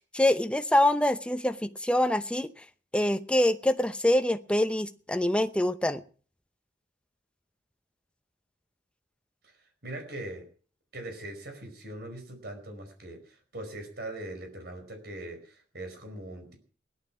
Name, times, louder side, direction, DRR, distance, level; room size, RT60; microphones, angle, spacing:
voice 1, 0.0-2.6 2.9-6.0, left 1 dB, 5° left, 10 dB, 0.8 m, -25 dB
voice 2, 9.8-10.4 10.9-16.6, right 1 dB, 60° right, 5 dB, 4.9 m, -41 dB
17.0 x 11.5 x 5.9 m, 0.42 s
head